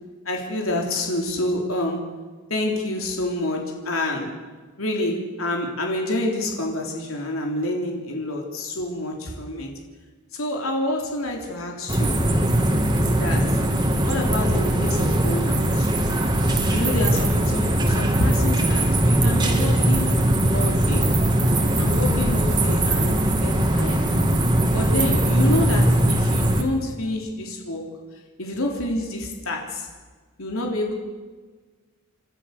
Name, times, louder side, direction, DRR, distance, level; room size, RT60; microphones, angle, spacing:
voice 1, 0.3-2.2 2.5-4.4 4.8-9.7 10.3-12.2 13.1-13.6 14.1-15.9 16.7-20.1 20.5-21.2 21.8-24.1 24.7-27.9 28.4-29.9 30.4-30.9, left 1 dB, 90° left, 1 dB, 3.5 m, -28 dB
sound 1, 11.9-26.6, right 1 dB, 20° right, 2.2 m, -20 dB
sound 2, 12.0-23.2, right 1 dB, 55° right, 1.9 m, -32 dB
30.0 x 13.0 x 6.6 m, 1.4 s
head